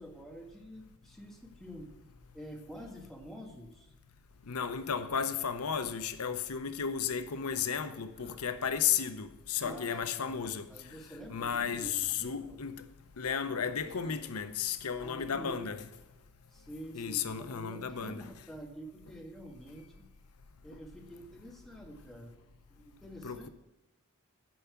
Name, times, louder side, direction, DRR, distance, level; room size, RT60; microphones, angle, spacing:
voice 1, 0.0-1.9 2.3-3.9 9.6-10.4 10.7-11.9 12.2-12.6 15.0-15.8 16.5-20.1 20.6-22.4 22.7-23.5, equal, ahead, 1.7 m, -47 dB
voice 2, 4.5-10.7 11.3-12.9 13.2-15.8 16.9-18.2 23.2-23.5, left 7 dB, 80° left, 0.7 m, -34 dB
sound 1, 7.4-8.7 9.5-10.2 11.6-12.4 13.8-14.6, right 1 dB, 25° right, 2.1 m, -55 dB
10.5 x 5.7 x 8.2 m
head